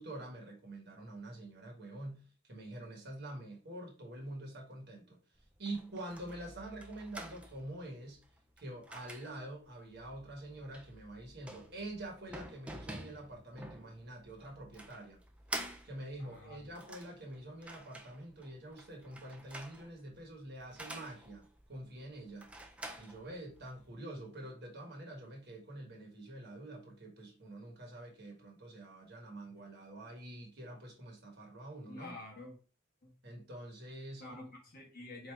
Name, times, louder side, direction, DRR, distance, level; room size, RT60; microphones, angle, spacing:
voice 1, 0.0-8.2 8.6-15.2 15.8-22.5 23.0-32.1 33.2-34.4, right 1 dB, 50° right, 1.2 m, -46 dB
sound 1, 5.3-23.9, right 1 dB, 5° right, 0.3 m, -49 dB
voice 2, 16.2-16.7 31.9-32.6 33.0-33.1 34.2-35.3, left 2 dB, 45° left, 1.4 m, -48 dB
4.5 x 2.7 x 3.2 m
head